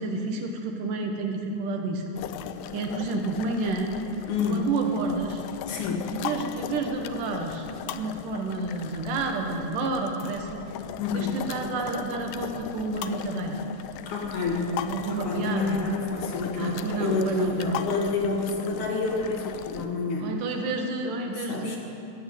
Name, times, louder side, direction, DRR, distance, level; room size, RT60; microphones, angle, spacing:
voice 1, 0.0-2.1 2.7-4.0 4.5-5.4 6.0-10.6 11.1-13.6 14.4-15.9 16.6-17.8 20.2-21.8, right 3 dB, 75° right, 3 dB, 2.7 m, -30 dB
sound 1, 2.1-19.9, left 11 dB, 90° left, 2.2 m, -38 dB
voice 2, 4.3-4.6 5.7-6.1 11.0-11.4 14.1-14.7 15.1-20.3 21.4-21.8, left 4 dB, 65° left, 0 dB, 2.9 m, -28 dB
14.0 x 7.1 x 8.9 m, 2.6 s
omnidirectional pair, 3.9 m